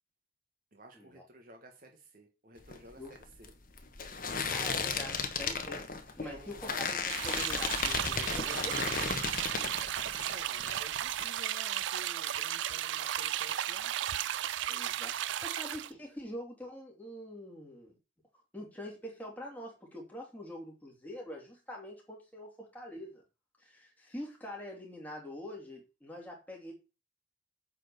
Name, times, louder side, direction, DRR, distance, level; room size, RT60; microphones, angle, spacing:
voice 1, 0.7-3.5 4.5-4.8 5.2-5.3 6.2-6.8 10.3-13.9, right 1 dB, 45° right, 2 dB, 1.4 m, -52 dB
sound 1, 2.6-10.3 10.6-11.3, left 5 dB, 45° left, 1.3 m, -35 dB
voice 2, 4.5-9.1 14.7-17.9 18.5-23.2 23.6-26.7, left 1 dB, 10° left, -1 dB, 2.9 m, -45 dB
sound 2, 7.1-15.9, right 11 dB, 80° right, 0.4 m, -34 dB
8.7 x 4.5 x 6.8 m, 0.30 s
head